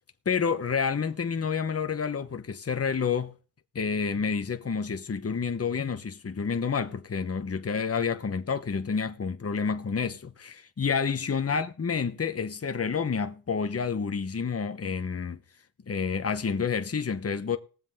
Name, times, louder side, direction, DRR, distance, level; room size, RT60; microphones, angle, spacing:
voice 1, 0.2-3.3 3.7-15.4 15.9-17.6, left 6 dB, 35° left, 1.1 m, -29 dB
20.5 x 7.5 x 3.6 m
wide cardioid pair, 100°, 39 cm